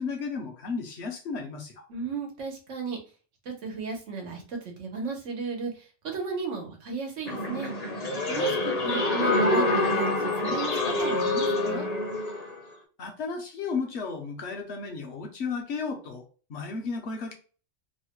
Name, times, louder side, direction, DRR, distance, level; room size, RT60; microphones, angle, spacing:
voice 1, 0.0-1.8 8.3-8.6 13.0-17.3, left 4 dB, 65° left, 2 dB, 1.0 m, -34 dB
voice 2, 1.9-3.0 3.4-7.7 8.3-8.6 8.8-11.9, right 4 dB, 90° right, 2 dB, 1.2 m, -34 dB
sound 1, 7.3-12.6, left 2 dB, 40° left, 0.7 m, -26 dB
3.1 x 2.1 x 2.9 m, 0.37 s
omnidirectional pair, 1.2 m